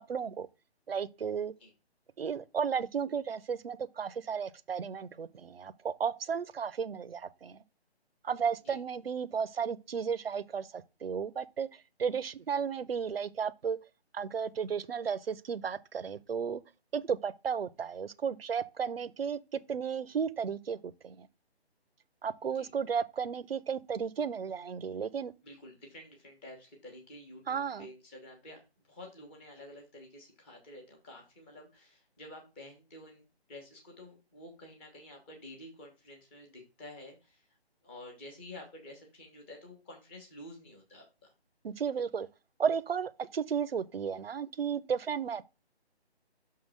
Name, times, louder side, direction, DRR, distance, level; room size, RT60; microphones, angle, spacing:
voice 1, 0.1-0.5 0.9-1.5 2.2-7.6 8.2-13.8 14.1-16.6 16.9-21.3 22.2-25.3 27.5-27.9 41.6-42.3 42.6-45.4, right 6 dB, 65° right, 0.7 m, -34 dB
voice 2, 25.4-28.6 28.9-37.5 37.8-41.1, left 1 dB, 10° left, 1.0 m, -50 dB
6.0 x 3.7 x 6.1 m
hypercardioid pair, 165°, 33 cm